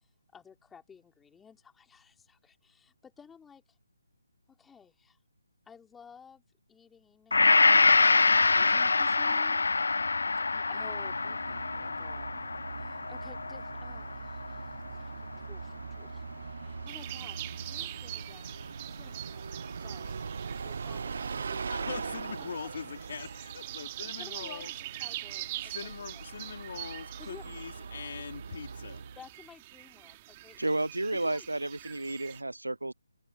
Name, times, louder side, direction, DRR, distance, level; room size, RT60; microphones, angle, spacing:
voice 1, 0.3-3.6 4.5-5.2 5.7-6.4 6.7-7.4 8.2-9.7 10.3-12.4 12.8-17.4 17.7-18.5 18.9-19.5 19.8-20.2 20.6-21.9 22.3-22.7 24.2-25.9 27.2-28.0 29.2-30.6 31.1-31.5, left 6 dB, 5° left, 4.3 m, -54 dB
Gong, 7.3-15.6 16.1-16.2, left 3 dB, 65° left, 0.4 m, -26 dB
Bus, 10.7-29.3, right 5 dB, 55° right, 1.0 m, -41 dB
sound 1, 16.9-32.4, right 18 dB, 25° right, 3.4 m, -44 dB
voice 2, 21.7-24.7 25.1-25.3 25.6-29.0, left 6 dB, 50° left, 4.2 m, -42 dB
voice 3, 30.6-32.9, right 2 dB, 85° right, 0.5 m, -32 dB
figure-of-eight pair, 150°, 0 cm